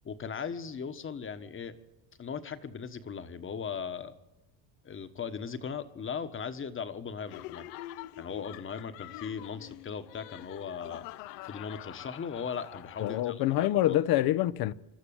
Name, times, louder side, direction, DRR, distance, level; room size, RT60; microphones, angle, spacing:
voice 1, 0.0-1.8 2.2-4.1 4.8-7.7 8.2-11.1 11.4-14.0, left 6 dB, 25° left, 1.3 m, -38 dB
Laughter, 7.3-13.6, left 16 dB, 75° left, 0.8 m, -46 dB
voice 2, 13.0-14.7, left 14 dB, 45° left, 0.7 m, -26 dB
26.5 x 12.5 x 8.7 m
supercardioid pair, 120°, 50 cm